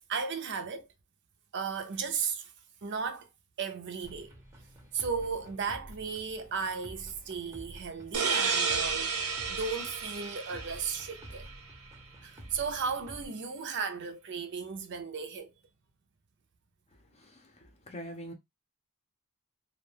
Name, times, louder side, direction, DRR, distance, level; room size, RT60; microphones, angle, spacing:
voice 1, 0.1-0.9 1.5-2.5 2.8-3.3 3.6-4.3 4.9-11.5 12.2-15.5, right 5 dB, 55° right, 0.5 m, -35 dB
sound 1, 4.0-13.3, right 1 dB, 15° right, 0.6 m, -50 dB
sound 2, 8.1-11.6, right 5 dB, 85° right, 0.7 m, -32 dB
voice 2, 17.1-18.3, equal, 30° left, 0.6 m, -44 dB
2.4 x 2.2 x 3.2 m
head